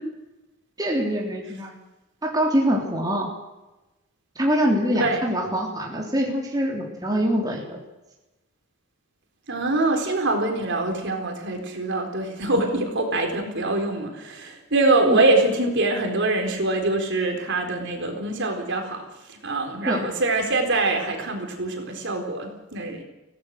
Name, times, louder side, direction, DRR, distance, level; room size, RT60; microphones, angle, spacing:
voice 1, 0.8-1.8 2.2-3.3 4.3-7.8 15.0-15.2 19.9-20.1, equal, 15° right, -1 dB, 3.5 m, -24 dB
voice 2, 9.5-19.0 19.3-23.0, right 2 dB, 55° right, 3 dB, 4.1 m, -24 dB
23.5 x 17.0 x 6.7 m, 1.0 s
head